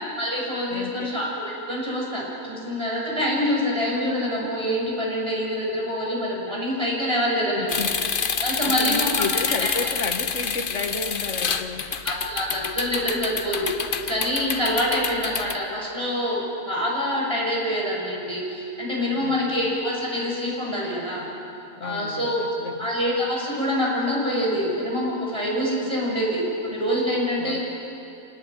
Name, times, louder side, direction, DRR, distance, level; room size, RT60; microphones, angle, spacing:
voice 1, 0.2-7.8 8.4-9.1 9.6-9.7 12.0-21.3 21.8-22.4 22.8-27.6, equal, 20° right, -3 dB, 6.5 m, -26 dB
voice 2, 0.7-1.1 7.6-8.0 8.6-11.9 19.1-19.7 21.8-22.9 27.4-27.6, left 4 dB, 65° left, 5 dB, 1.9 m, -32 dB
sound 1, 7.7-15.6, left 6 dB, 45° left, 1.0 m, -28 dB
27.0 x 19.0 x 9.2 m, 2.8 s
omnidirectional pair, 1.4 m